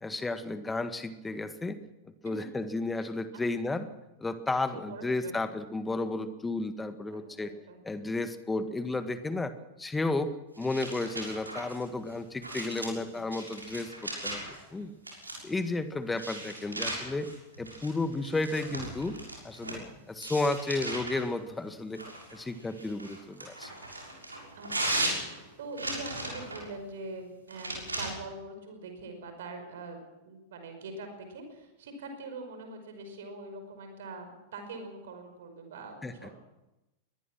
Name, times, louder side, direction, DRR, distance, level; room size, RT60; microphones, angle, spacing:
voice 1, 0.0-1.8 2.2-3.9 4.2-7.5 7.8-9.5 9.8-14.9 15.4-17.3 17.6-19.2 19.4-22.0 22.3-23.7 36.0-36.1, left 2 dB, 10° left, 11 dB, 1.7 m, -33 dB
voice 2, 4.7-5.3 7.1-7.8 12.6-13.2 14.8-14.9 24.6-25.1 25.6-36.3, right 2 dB, 60° right, 6 dB, 5.3 m, -43 dB
sound 1, 10.6-14.6 15.1-15.6 16.1-19.8 20.2-21.3 21.9-26.7 27.5-28.1, right 1 dB, 80° right, 6.5 m, -37 dB
22.5 x 20.0 x 6.1 m, 0.98 s
figure-of-eight pair, 90°, 0 cm